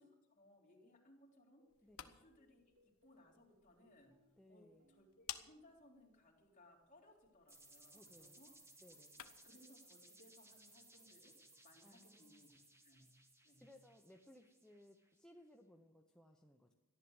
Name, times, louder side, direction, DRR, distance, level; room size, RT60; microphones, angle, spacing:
voice 1, 0.0-1.6 2.0-4.1 4.5-8.5 9.4-11.4 11.6-12.6 12.8-13.1 13.4-13.7, left 1 dB, 35° left, -2 dB, 3.7 m, -66 dB
sound 1, 1.6-6.1 7.0-7.4 7.6-9.8 10.2-12.1, equal, 90° right, 3.6 m, -79 dB
sound 2, 1.7-9.6, left 11 dB, 85° left, 1.1 m, -57 dB
voice 2, 1.8-2.2 4.4-4.9 7.9-8.4 8.8-9.2 11.8-12.5 13.6-16.7, left 1 dB, 5° left, 1 dB, 0.8 m, -64 dB
sound 3, 7.5-15.3, right 2 dB, 10° right, 1.4 m, -64 dB
14.5 x 11.0 x 8.0 m, 1.0 s
head